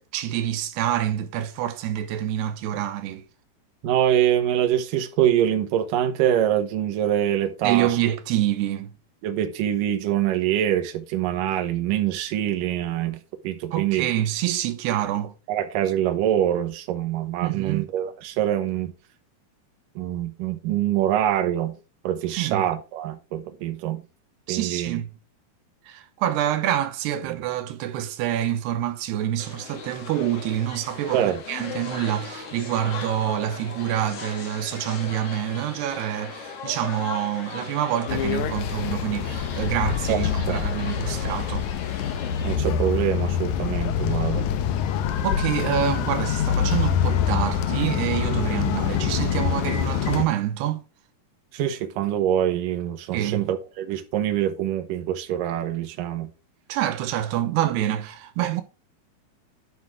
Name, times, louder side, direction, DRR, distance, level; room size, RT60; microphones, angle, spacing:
voice 1, 0.0-3.3 7.6-8.9 13.7-15.3 17.4-17.9 22.3-22.6 24.5-25.2 25.8-41.7 45.2-50.9 53.1-53.5 56.7-58.6, right 12 dB, 85° right, 3.0 m, -27 dB
voice 2, 3.8-8.0 9.2-13.2 13.4-14.1 15.5-18.9 20.0-21.8 22.0-24.0 24.5-25.0 27.3-27.4 31.1-31.4 40.1-40.7 42.4-44.5 48.7-48.8 51.5-56.3, right 11 dB, 65° right, 2.7 m, -24 dB
sound 1, 29.4-42.6, left 6 dB, 50° left, 2.0 m, -38 dB
sound 2, 38.1-50.3, left 8 dB, 80° left, 1.7 m, -25 dB
11.5 x 6.0 x 3.7 m
omnidirectional pair, 4.6 m